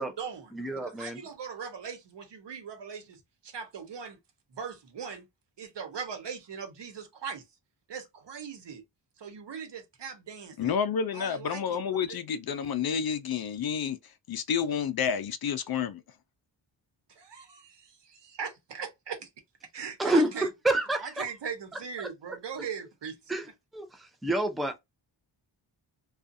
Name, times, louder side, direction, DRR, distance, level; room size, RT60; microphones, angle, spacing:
voice 1, 0.0-4.2 4.5-5.3 5.6-7.4 7.9-8.8 9.2-10.7 11.1-12.0 17.1-19.3 19.7-20.5 21.0-23.2, right 6 dB, 60° right, 1.1 m, -40 dB
voice 2, 0.5-1.2 20.0-21.2 22.0-22.1 23.3-23.5 23.7-24.8, right 1 dB, ahead, 0.5 m, -28 dB
voice 3, 10.6-16.0, left 7 dB, 55° left, 0.5 m, -30 dB
2.5 x 2.4 x 2.5 m
cardioid pair, 80°, 46 cm